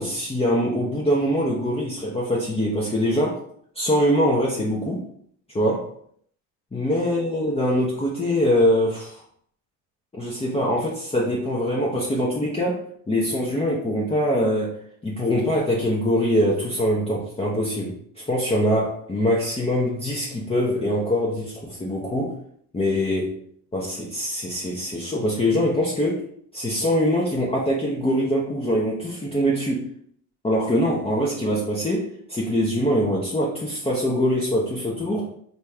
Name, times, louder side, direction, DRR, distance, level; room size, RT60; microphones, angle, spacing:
voice 1, 0.0-3.4 3.7-5.0 5.5-5.9 6.7-9.2 10.1-14.7 15.0-22.3 22.7-23.3 23.7-26.2 26.5-29.8 30.4-35.3, equal, 15° left, -4 dB, 0.8 m, -23 dB
4.0 x 2.4 x 3.3 m, 0.64 s
supercardioid pair, 80°, 42 cm